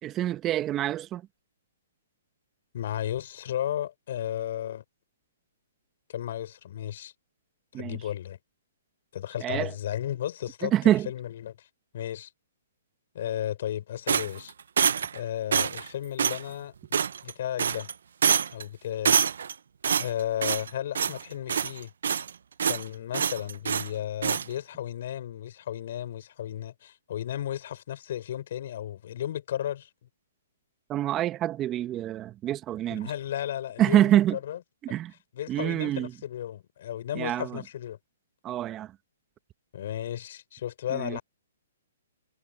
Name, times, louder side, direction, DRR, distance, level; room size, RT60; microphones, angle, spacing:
voice 1, 0.0-1.2 7.7-8.0 9.4-9.7 10.6-11.1 30.9-33.1 33.8-34.4 34.9-35.1 35.5-36.1 37.1-37.6 38.4-38.9 40.9-41.2, right 12 dB, 25° right, 1.6 m, -26 dB
voice 2, 2.7-4.8 6.1-7.1 7.7-8.4 9.1-11.6 11.9-12.3 13.1-14.5 15.1-17.9 18.5-19.2 20.0-21.9 22.7-29.9 32.9-34.6 35.3-38.0 39.7-41.2, left 11 dB, 55° left, 6.5 m, -34 dB
sound 1, 14.1-15.2 15.5-15.9 16.2-16.4 16.9-17.3 17.6-17.9 18.2-18.6 19.0-19.5 19.8-20.7 20.9-21.2 21.5-22.3 22.6-22.8 23.1-23.9 24.2-24.5, right 7 dB, 70° right, 0.7 m, -25 dB
hypercardioid pair, 140°, 0 cm